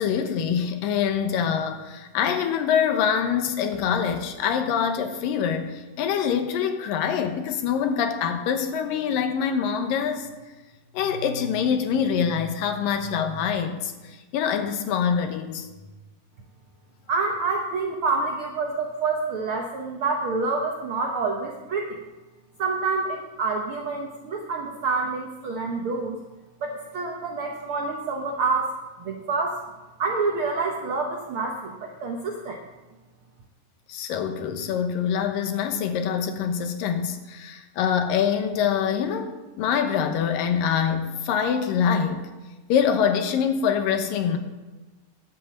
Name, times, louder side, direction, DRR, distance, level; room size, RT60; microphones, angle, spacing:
voice 1, 0.0-10.3 10.9-15.7 33.9-42.2 42.7-44.4, left 7 dB, 85° left, 7 dB, 2.8 m, -25 dB
voice 2, 17.1-22.0 22.6-26.2 26.6-28.7 29.0-29.6 30.0-32.6, right 4 dB, 70° right, 1 dB, 1.2 m, -27 dB
10.5 x 8.2 x 7.6 m, 1.2 s
omnidirectional pair, 3.9 m